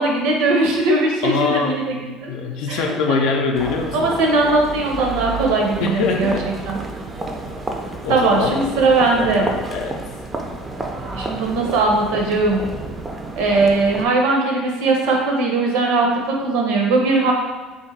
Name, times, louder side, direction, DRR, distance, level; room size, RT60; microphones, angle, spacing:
voice 1, 0.0-1.9 2.2-2.3 2.7-3.0 3.9-6.3 6.7-6.8 8.1-9.5 11.1-12.6 13.4-17.3, right 3 dB, 85° right, 0 dB, 0.7 m, -19 dB
voice 2, 1.2-4.1 5.8-6.6 8.0-8.6 9.1-10.0, left 4 dB, 70° left, 3 dB, 0.4 m, -23 dB
sound 1, 3.5-14.1, right 2 dB, 20° right, 0.4 m, -30 dB
2.6 x 2.5 x 4.0 m, 1.3 s
cardioid pair, 120°, 0 cm